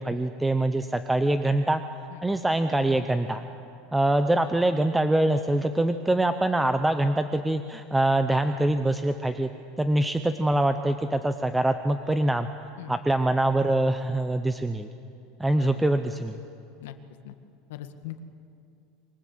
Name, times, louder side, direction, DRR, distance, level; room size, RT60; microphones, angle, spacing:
voice 1, 0.0-1.8 2.2-3.4 3.9-9.5 9.8-12.5 12.9-14.9 15.4-16.4, right 1 dB, 5° right, 8 dB, 0.6 m, -24 dB
voice 2, 17.7-18.2, left 14 dB, 85° left, 8 dB, 1.7 m, -39 dB
26.5 x 23.5 x 7.9 m, 2.6 s
supercardioid pair, 175°, 0 cm